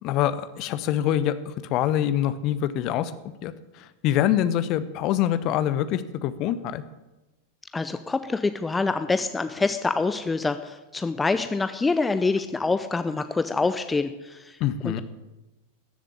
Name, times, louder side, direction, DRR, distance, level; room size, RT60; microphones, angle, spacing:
voice 1, 0.0-3.1 3.4-6.8 14.6-15.0, left 11 dB, 40° left, 14 dB, 0.9 m, -25 dB
voice 2, 7.7-14.6 14.8-15.0, left 3 dB, 10° left, 10 dB, 0.7 m, -26 dB
14.0 x 7.4 x 8.8 m, 1.0 s
figure-of-eight pair, 90°, 0 cm